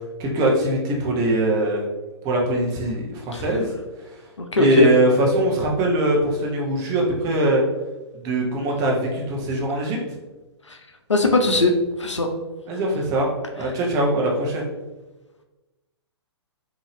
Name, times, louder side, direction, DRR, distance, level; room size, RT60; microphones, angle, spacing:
voice 1, 0.2-1.9 2.2-3.7 4.5-7.6 8.1-10.0 12.7-14.7, right 1 dB, 25° right, -2 dB, 0.8 m, -21 dB
voice 2, 4.4-4.9 10.7-10.8 11.1-11.7 12.0-12.3 13.6-13.7, left 2 dB, 85° left, 4 dB, 0.6 m, -20 dB
3.8 x 2.7 x 3.1 m, 1.2 s
figure-of-eight pair, 120°, 15 cm